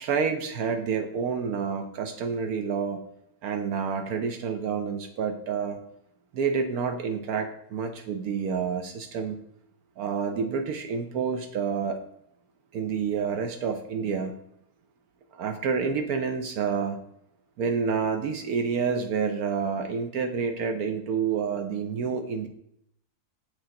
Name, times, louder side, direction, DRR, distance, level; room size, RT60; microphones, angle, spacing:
voice 1, 0.1-3.0 3.4-5.8 6.3-9.4 10.0-12.0 12.7-14.3 15.4-17.0 17.6-22.5, right 6 dB, 70° right, 7 dB, 1.1 m, -28 dB
7.1 x 5.1 x 3.7 m, 0.75 s
omnidirectional pair, 1.7 m